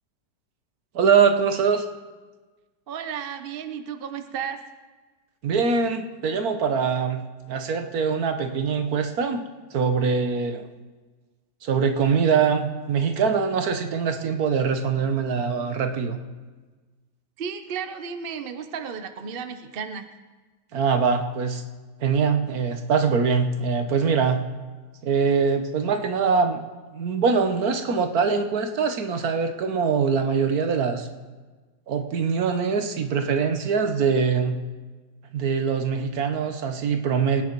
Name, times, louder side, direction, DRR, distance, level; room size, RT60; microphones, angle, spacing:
voice 1, 0.9-1.8 5.4-9.4 9.7-10.6 11.6-16.2 20.7-21.6 22.0-24.4 25.0-26.6 26.9-31.1 31.9-34.6 35.3-37.4, right 5 dB, 60° right, 7 dB, 1.4 m, -23 dB
voice 2, 2.9-4.6 17.4-20.1, right 7 dB, 45° right, 8 dB, 0.7 m, -33 dB
22.5 x 9.5 x 4.6 m, 1.3 s
omnidirectional pair, 1.8 m